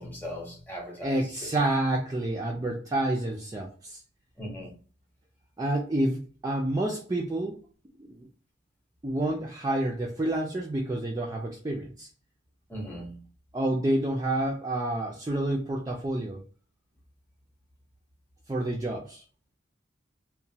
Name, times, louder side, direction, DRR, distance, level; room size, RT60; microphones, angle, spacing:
voice 1, 0.0-1.2 4.4-4.7 12.7-13.2, equal, 10° left, 0.7 m, -38 dB
voice 2, 1.0-4.0 5.6-7.6 8.0-8.3 9.0-12.1 13.5-16.4 18.5-19.2, right 1 dB, 20° right, 0.3 m, -29 dB
2.9 x 2.1 x 2.6 m
head